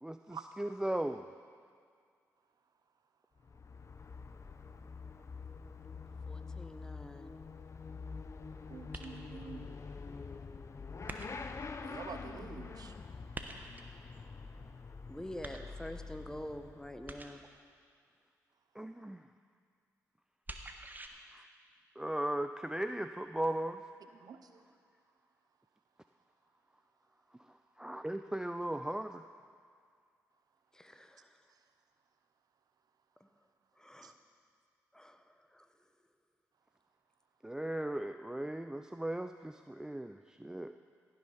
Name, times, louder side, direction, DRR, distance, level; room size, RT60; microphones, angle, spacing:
voice 1, 0.0-1.3 18.8-19.3 21.3-21.5 22.0-23.8 27.5-29.2 37.4-40.8, right 1 dB, 10° right, 9 dB, 0.4 m, -37 dB
Motorcycle / Accelerating revving vroom, 3.4-17.2, left 4 dB, 40° left, 0.7 m, -46 dB
voice 2, 6.3-7.3 15.1-17.4 30.7-31.4 33.2-33.3 33.8-34.2 34.9-35.7, left 1 dB, 10° left, 8 dB, 1.0 m, -47 dB
voice 3, 8.7-9.8 11.8-13.0 24.1-24.6 34.0-34.1, right 6 dB, 60° right, 8 dB, 0.7 m, -48 dB
Water Splashes, 8.9-9.5 11.1-11.7 13.3-14.0 15.4-16.1 17.1-17.6 20.5-21.1, right 2 dB, 25° right, 1.1 m, -46 dB
16.0 x 6.5 x 5.7 m, 2.2 s
hypercardioid pair, 45°, 8 cm